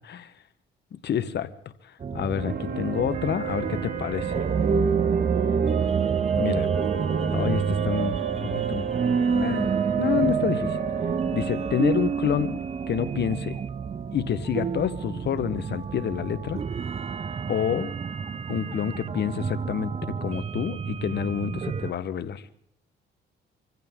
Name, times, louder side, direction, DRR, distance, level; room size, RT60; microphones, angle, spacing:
voice 1, 1.0-1.5 2.1-4.4 6.4-6.7 7.3-8.9 9.3-9.7 10.0-10.8 11.3-12.6 12.9-13.6 14.1-16.6 17.5-17.9 18.5-22.4, left 9 dB, 60° left, 12 dB, 1.2 m, -28 dB
sound 1, 2.0-21.9, right 6 dB, 30° right, 0.5 m, -30 dB
sound 2, 2.3-14.0, right 6 dB, 50° right, 2.2 m, -28 dB
25.0 x 15.5 x 3.7 m, 0.67 s
cardioid pair, 90°, 20 cm